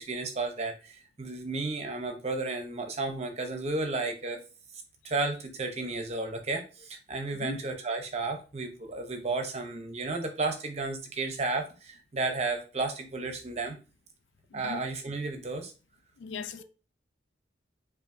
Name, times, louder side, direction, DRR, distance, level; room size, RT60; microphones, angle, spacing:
voice 1, 0.0-4.4 5.0-13.8 14.5-15.7 16.6-16.7, right 3 dB, 35° right, 0.6 m, -33 dB
voice 2, 14.5-14.8 16.2-16.6, left 5 dB, 75° left, 0.3 m, -39 dB
5.3 x 2.5 x 2.5 m
head